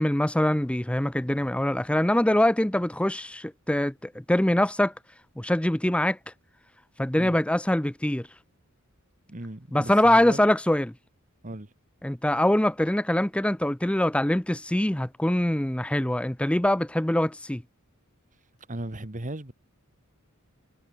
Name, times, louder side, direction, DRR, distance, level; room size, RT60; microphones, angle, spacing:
voice 1, 0.0-4.9 5.4-6.2 7.0-8.3 9.7-10.9 12.0-17.6, left 1 dB, 5° left, 0.6 m, -23 dB
voice 2, 9.3-10.5 11.4-11.7 18.7-19.5, right 1 dB, 35° right, 1.7 m, -37 dB
head